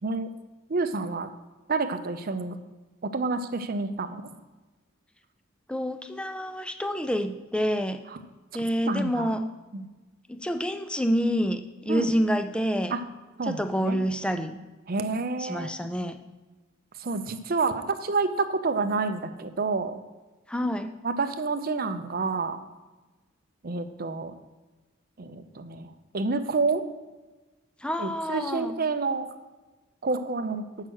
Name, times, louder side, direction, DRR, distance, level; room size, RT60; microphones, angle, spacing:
voice 1, 0.7-1.3 1.7-2.6 3.0-4.4 8.1-8.2 8.9-9.4 9.7-9.9 11.9-12.1 12.9-13.0 13.4-14.0 14.9-15.7 17.0-20.0 21.0-22.6 23.6-24.3 25.2-26.8 28.0-29.3 30.0-30.7, right 3 dB, 45° right, 9 dB, 0.6 m, -29 dB
voice 2, 5.7-8.0 8.5-9.4 10.3-13.0 13.4-14.6 15.4-16.2 20.5-20.9 27.8-28.8, equal, 5° left, 8 dB, 0.4 m, -28 dB
7.6 x 5.7 x 6.3 m, 1.2 s
head